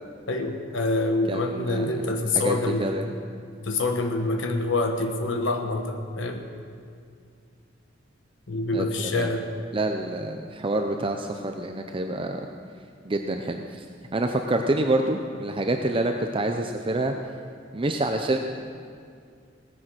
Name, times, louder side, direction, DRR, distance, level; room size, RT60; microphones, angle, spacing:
voice 1, 0.3-2.9 3.6-6.5 8.5-9.5, left 2 dB, 70° left, 4 dB, 1.2 m, -26 dB
voice 2, 1.3-1.9 2.3-3.1 8.7-8.9 9.1-9.3 9.7-12.5 13.0-13.8 14.1-17.1 17.7-18.4, right 2 dB, 25° right, 4 dB, 0.6 m, -27 dB
17.0 x 10.0 x 6.2 m, 2.2 s
head